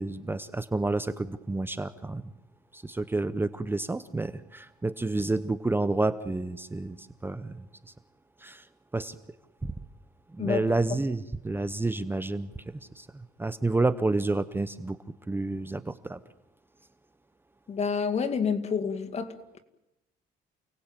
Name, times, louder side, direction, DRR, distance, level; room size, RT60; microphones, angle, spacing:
voice 1, 0.0-2.2 2.7-7.7 8.4-8.7 8.9-9.1 9.6-9.7 10.3-12.5 12.9-15.0 15.3-16.2, right 2 dB, 10° right, 13 dB, 0.9 m, -29 dB
voice 2, 17.7-19.6, left 6 dB, 40° left, 8 dB, 2.3 m, -29 dB
29.0 x 18.5 x 9.0 m, 0.95 s
cardioid pair, 110°, 17 cm